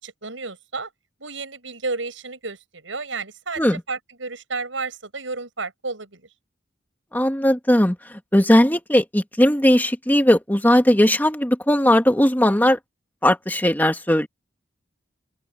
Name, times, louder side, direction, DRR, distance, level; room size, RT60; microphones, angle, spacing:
voice 1, 0.0-0.9 1.2-6.2, right 3 dB, 90° right, 6.0 m, -32 dB
voice 2, 7.1-8.0 8.3-12.8 13.2-14.3, left 1 dB, 10° left, 1.8 m, -18 dB
open air
head